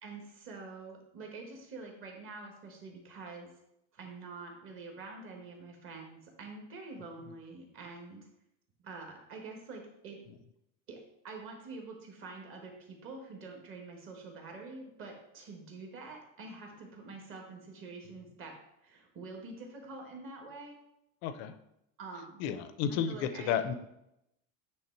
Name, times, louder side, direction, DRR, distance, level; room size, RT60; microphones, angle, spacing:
voice 1, 0.0-3.5 3.9-8.3 8.8-10.2 10.9-18.5 18.8-20.8 22.0-22.4 22.9-23.6, right 3 dB, 35° right, 1 dB, 1.3 m, -46 dB
voice 2, 21.2-21.5 22.4-23.2 23.5-23.7, left 8 dB, 40° left, 10 dB, 0.5 m, -31 dB
8.7 x 3.3 x 4.5 m, 0.83 s
cardioid pair, 180°, 39 cm